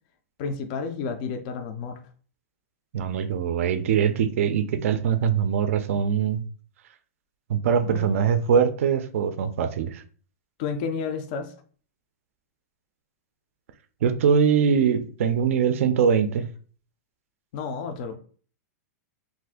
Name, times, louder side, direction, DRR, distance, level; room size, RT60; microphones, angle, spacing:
voice 1, 0.4-2.0 7.8-8.2 10.6-11.5 17.5-18.2, left 5 dB, 30° left, 0.3 m, -31 dB
voice 2, 2.9-6.4 7.5-10.0 14.0-16.5, right 7 dB, 55° right, 0.4 m, -22 dB
2.5 x 2.4 x 3.5 m
supercardioid pair, 170°, 9 cm